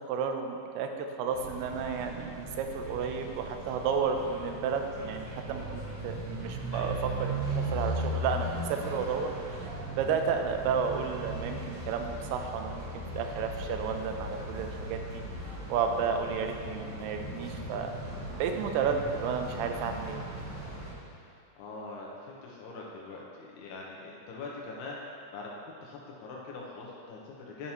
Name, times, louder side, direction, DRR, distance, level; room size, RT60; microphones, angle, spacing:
voice 1, 0.1-6.9 7.2-9.7 10.0-15.2 15.7-17.9 18.3-20.2, right 6 dB, 80° right, 5 dB, 2.5 m, -32 dB
sound 1, 1.3-20.9, right 1 dB, 55° right, 2.2 m, -38 dB
voice 2, 6.7-7.0 20.7-25.0 25.3-27.7, left 3 dB, 80° left, -3 dB, 2.7 m, -43 dB
11.0 x 5.6 x 2.9 m, 2.4 s
omnidirectional pair, 4.7 m